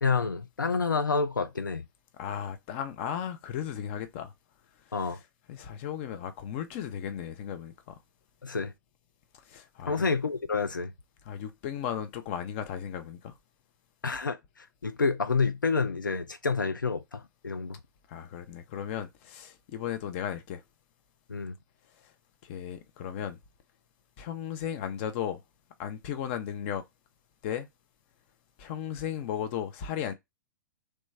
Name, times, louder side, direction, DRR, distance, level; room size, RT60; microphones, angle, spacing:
voice 1, 0.0-1.8 4.9-5.2 8.4-8.7 9.9-10.9 14.0-14.4 14.8-17.7 21.3-21.5, left 4 dB, 75° left, 0.5 m, -28 dB
voice 2, 2.2-4.3 5.0-5.2 5.5-8.0 9.5-10.1 11.2-13.3 18.1-20.6 22.0-22.1 22.4-23.4 24.2-25.4 25.8-26.8 27.4-27.7 28.6-30.1, left 9 dB, 40° left, 0.7 m, -35 dB
3.2 x 3.1 x 3.2 m
figure-of-eight pair, 105°, 11 cm